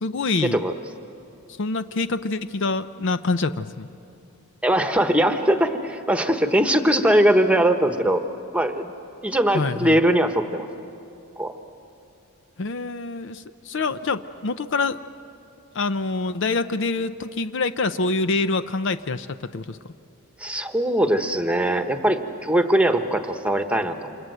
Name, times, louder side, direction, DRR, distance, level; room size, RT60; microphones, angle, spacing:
voice 1, 0.0-0.6 1.6-3.9 9.5-10.0 12.6-15.0 15.7-19.9, left 3 dB, 55° left, 11 dB, 0.6 m, -26 dB
voice 2, 4.6-8.2 8.5-8.9 9.2-10.7 11.4-11.5 20.4-24.2, right 1 dB, 5° right, 6 dB, 1.1 m, -21 dB
28.5 x 27.0 x 7.9 m, 2.7 s
head